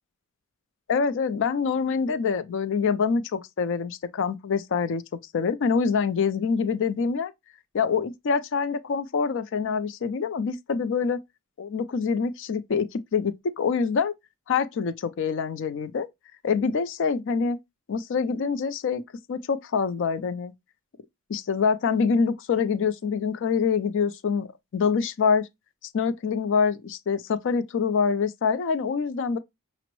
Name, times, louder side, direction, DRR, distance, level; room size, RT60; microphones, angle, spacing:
voice 1, 0.9-5.0 5.3-7.3 7.7-11.2 11.6-14.1 14.5-16.1 16.4-17.6 17.9-19.0 19.3-20.5 21.3-25.5 25.9-29.4, left 5 dB, 60° left, 0.4 m, -25 dB
5.9 x 2.0 x 2.9 m
head